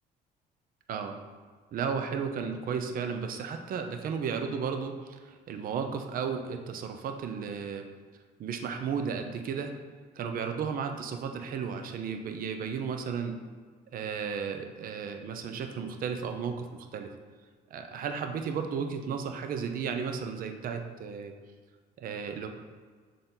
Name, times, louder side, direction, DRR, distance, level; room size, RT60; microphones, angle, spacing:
voice 1, 0.9-1.2 1.7-7.8 8.4-9.7 10.1-13.4 13.9-16.7 16.9-17.1 17.7-21.3 22.0-22.5, right 6 dB, 55° right, 6 dB, 0.7 m, -34 dB
6.7 x 3.8 x 3.9 m, 1.5 s
cardioid pair, 110°, 17 cm